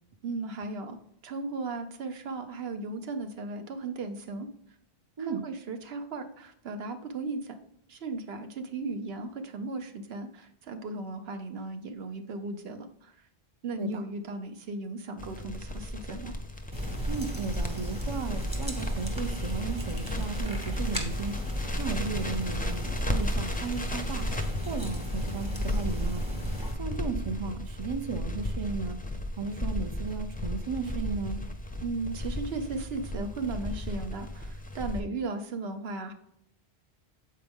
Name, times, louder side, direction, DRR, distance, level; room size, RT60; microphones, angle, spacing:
voice 1, 0.2-1.0 1.2-4.5 5.2-7.6 7.9-13.2 13.6-16.3 31.8-36.1, right 3 dB, 70° right, 7 dB, 0.9 m, -36 dB
Crackle, 15.2-35.0, left 1 dB, 10° left, 0.5 m, -34 dB
sound 1, 16.7-26.7, equal, 5° right, 0.9 m, -36 dB
voice 2, 17.1-21.4 21.8-26.4 26.8-29.0 29.4-31.5, right 5 dB, 35° right, 7 dB, 0.5 m, -35 dB
7.5 x 4.5 x 3.5 m, 0.75 s
omnidirectional pair, 1.1 m